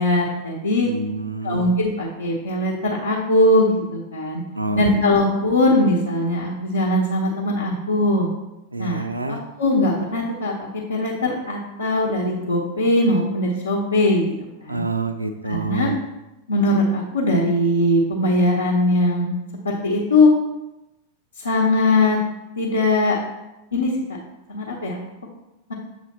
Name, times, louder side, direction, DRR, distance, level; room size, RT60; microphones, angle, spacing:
voice 1, 0.0-0.9 1.4-4.4 4.7-8.3 8.8-10.5 10.9-14.3 14.6-14.8 15.4-15.9 16.5-19.4 19.6-20.3 21.4-22.2 22.6-23.1 23.7-23.9 24.5-25.0, left 1 dB, 75° left, -6 dB, 1.0 m, -20 dB
voice 2, 0.8-1.7 4.6-5.0 8.7-9.4 14.7-16.0, right 3 dB, 85° right, 8 dB, 0.4 m, -27 dB
7.3 x 3.3 x 4.3 m, 0.96 s
figure-of-eight pair, 90°, 0 cm